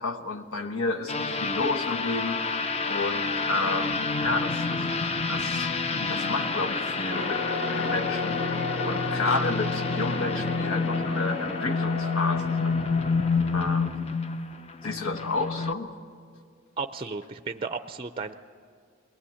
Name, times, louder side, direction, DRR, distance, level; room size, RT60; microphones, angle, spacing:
voice 1, 0.0-5.7 6.1-12.8 13.5-14.1 14.8-15.9, left 3 dB, 85° left, 5 dB, 1.3 m, -31 dB
sound 1, 1.1-15.7, left 4 dB, 30° left, 0.6 m, -29 dB
sound 2, 7.1-13.6, left 4 dB, 70° left, 1.8 m, -33 dB
voice 2, 16.8-18.3, right 4 dB, 25° right, 9 dB, 0.5 m, -34 dB
22.0 x 19.0 x 8.6 m, 2.2 s
head